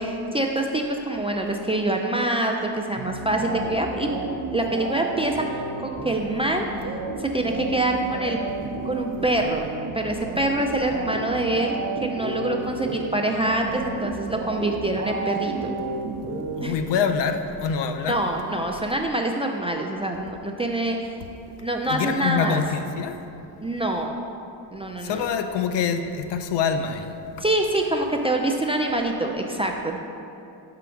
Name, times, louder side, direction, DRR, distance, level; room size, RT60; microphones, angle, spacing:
voice 1, 0.0-4.1 4.5-6.6 7.2-8.4 8.8-9.6 9.9-15.7 16.6-16.7 18.1-21.1 21.6-22.6 23.6-24.1 24.7-25.2 27.4-30.0, right 1 dB, 15° right, 2 dB, 0.3 m, -25 dB
sound 1, 3.0-17.3, right 3 dB, 35° right, 0.7 m, -32 dB
voice 2, 16.6-18.2 21.9-23.2 25.0-27.1, left 6 dB, 65° left, 7 dB, 0.6 m, -25 dB
5.9 x 3.8 x 5.7 m, 2.7 s
cardioid pair, 85°, 45 cm